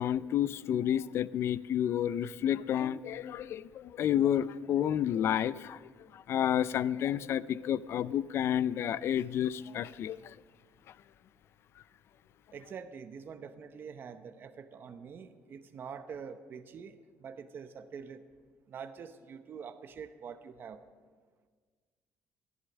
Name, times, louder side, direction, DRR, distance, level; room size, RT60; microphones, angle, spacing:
voice 1, 0.0-5.8 6.3-10.2, left 10 dB, 55° left, 18 dB, 0.4 m, -30 dB
voice 2, 12.5-18.2 18.7-20.8, right 6 dB, 45° right, 9 dB, 0.8 m, -45 dB
14.5 x 11.0 x 6.3 m, 1.5 s
cardioid pair, 145°, 5 cm